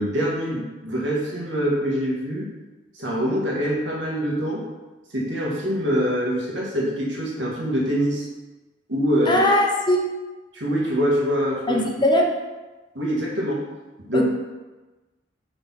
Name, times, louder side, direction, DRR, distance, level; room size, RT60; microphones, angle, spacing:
voice 1, 0.0-2.5 2.9-4.6 5.1-8.3 8.9-9.5 10.5-11.8 13.0-13.6 14.1-14.3, equal, 85° right, -3 dB, 1.7 m, -24 dB
voice 2, 9.3-10.0 11.7-12.3 14.1-14.3, left 1 dB, 25° left, 0 dB, 0.8 m, -20 dB
5.8 x 4.1 x 5.6 m, 1.2 s
head